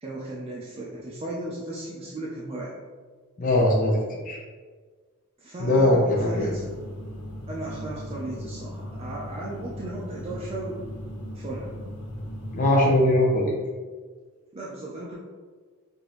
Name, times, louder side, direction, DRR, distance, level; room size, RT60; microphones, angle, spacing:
voice 1, 0.0-2.7 5.4-6.7 7.5-10.8 11.3-11.7 14.5-15.2, right 2 dB, 25° right, -5 dB, 0.4 m, -35 dB
voice 2, 3.4-4.0 4.3-4.4 5.6-6.5 12.5-13.5, left 1 dB, 40° left, -2 dB, 0.6 m, -20 dB
sound 1, 6.1-12.7, equal, 75° left, 0.6 m, -37 dB
4.9 x 2.6 x 3.0 m, 1.5 s
head